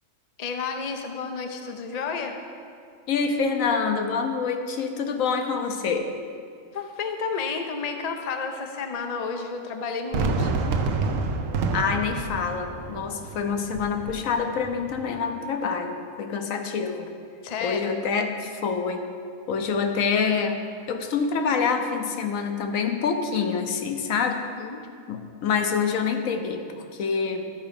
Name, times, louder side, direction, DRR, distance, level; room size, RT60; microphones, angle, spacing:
voice 1, 0.4-2.3 6.7-10.5 17.4-17.9 24.5-24.8, left 5 dB, 40° left, 4 dB, 0.6 m, -31 dB
voice 2, 3.1-6.1 11.7-17.1 17.6-19.1 19.5-20.6 20.9-24.4 25.1-27.5, left 5 dB, 85° left, 5 dB, 1.1 m, -26 dB
Fireworks, 10.1-15.2, right 4 dB, 75° right, 1.1 m, -29 dB
12.5 x 4.9 x 5.1 m, 2.3 s
omnidirectional pair, 1.4 m